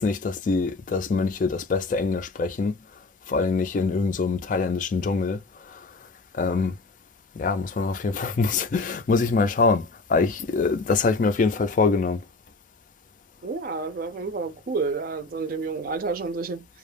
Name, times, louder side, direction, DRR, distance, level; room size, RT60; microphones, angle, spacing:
voice 1, 0.0-2.8 3.3-5.9 6.3-6.8 7.4-12.2, left 4 dB, 45° left, 0.3 m, -24 dB
voice 2, 13.4-16.7, right 4 dB, 50° right, 0.4 m, -29 dB
2.2 x 2.0 x 3.2 m
head